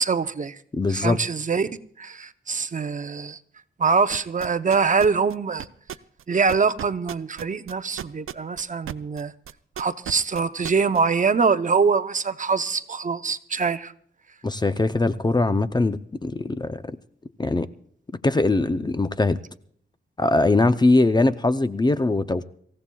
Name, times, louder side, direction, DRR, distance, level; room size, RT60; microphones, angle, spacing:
voice 1, 0.0-0.6 0.9-1.7 2.0-3.4 3.8-5.7 6.3-9.3 9.8-13.9, right 5 dB, 40° right, 0.7 m, -23 dB
voice 2, 0.7-1.2 14.4-17.0 17.4-17.7 18.2-19.4 20.2-22.4, left 2 dB, 20° left, 0.5 m, -21 dB
sound 1, 4.1-9.2 9.5-11.0, right 9 dB, 80° right, 0.5 m, -34 dB
26.0 x 15.5 x 2.3 m
wide cardioid pair, 125°, 21 cm